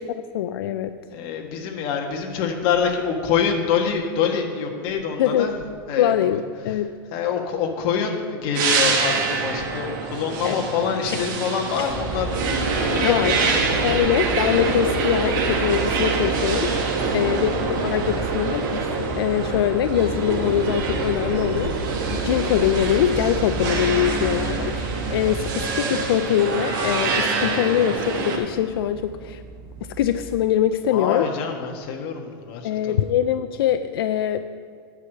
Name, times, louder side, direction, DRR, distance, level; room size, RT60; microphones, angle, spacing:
voice 1, 0.2-1.0 5.2-5.5 6.0-6.9 10.4-10.6 11.1-11.3 11.8-11.9 13.0-13.4 13.8-29.4 29.8-31.3 32.6-34.4, left 10 dB, 80° left, 10 dB, 0.4 m, -23 dB
voice 2, 1.1-5.5 5.9-6.1 7.1-13.5 13.8-14.0 17.0-17.2 30.9-33.0, left 6 dB, 45° left, 2 dB, 1.4 m, -26 dB
sound 1, 8.5-28.4, right 4 dB, 60° right, 1.7 m, -25 dB
sound 2, 11.9-30.4, right 3 dB, 35° right, 1.8 m, -33 dB
sound 3, 19.9-25.6, right 3 dB, 80° right, 2.4 m, -33 dB
10.0 x 4.8 x 7.7 m, 2.1 s
supercardioid pair, 150°, 12 cm